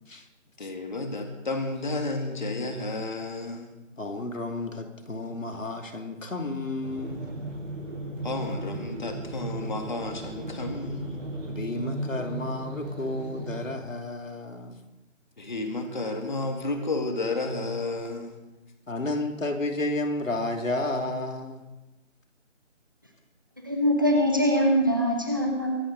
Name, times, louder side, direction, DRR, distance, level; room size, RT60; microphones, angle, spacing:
voice 1, 0.6-3.7 8.2-11.3 15.4-18.4, left 2 dB, 35° left, 4 dB, 2.2 m, -31 dB
voice 2, 4.0-7.3 11.5-14.8 18.9-21.6, left 2 dB, 80° left, 4 dB, 2.7 m, -32 dB
sound 1, 6.8-13.7, right 2 dB, 75° right, 5.0 m, -36 dB
voice 3, 23.6-25.8, equal, 15° right, 2 dB, 1.0 m, -23 dB
23.5 x 11.5 x 4.0 m, 1.0 s
figure-of-eight pair, 175°, 38 cm